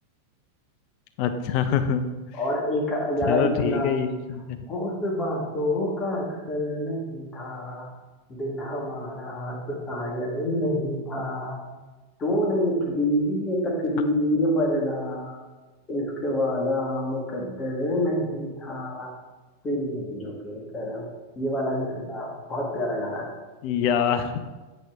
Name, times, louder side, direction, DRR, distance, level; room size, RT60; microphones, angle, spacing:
voice 1, 1.2-2.0 3.3-4.6 23.6-24.3, left 7 dB, 45° left, 9 dB, 0.4 m, -24 dB
voice 2, 2.3-4.1 4.7-7.9 8.3-11.6 12.2-15.4 15.9-19.1 19.6-21.1 21.3-23.3, left 1 dB, 25° left, -1 dB, 1.5 m, -27 dB
7.9 x 4.2 x 3.5 m, 1.2 s
figure-of-eight pair, 90°, 0 cm